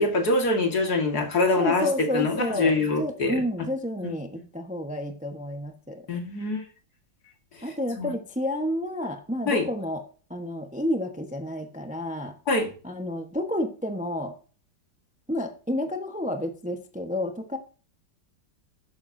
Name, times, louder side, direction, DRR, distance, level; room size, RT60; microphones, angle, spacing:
voice 1, 0.0-1.9 2.1-3.4 4.0-4.1 6.1-6.6 8.0-8.1 9.5-9.7 12.5-12.7, left 3 dB, 55° left, 4 dB, 2.5 m, -24 dB
voice 2, 1.6-6.0 7.6-10.0 10.3-12.4 12.8-14.3 15.3-17.6, left 1 dB, 5° right, 5 dB, 1.0 m, -30 dB
12.5 x 9.6 x 2.8 m, 0.37 s
omnidirectional pair, 2.1 m